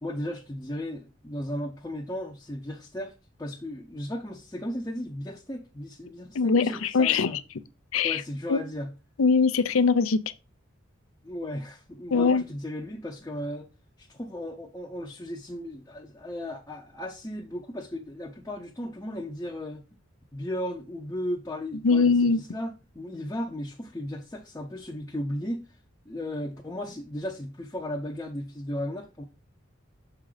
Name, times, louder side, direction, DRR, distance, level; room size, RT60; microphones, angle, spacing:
voice 1, 0.0-3.1 3.4-7.4 8.0-8.9 11.2-13.7 14.0-19.8 20.3-25.7 26.1-29.2, left 1 dB, 15° left, 0.7 m, -35 dB
voice 2, 6.3-7.4 7.9-8.2 8.5-8.6 9.2-10.2 12.1-12.4 21.8-22.4, left 4 dB, 90° left, 0.6 m, -21 dB
6.7 x 3.8 x 4.9 m
head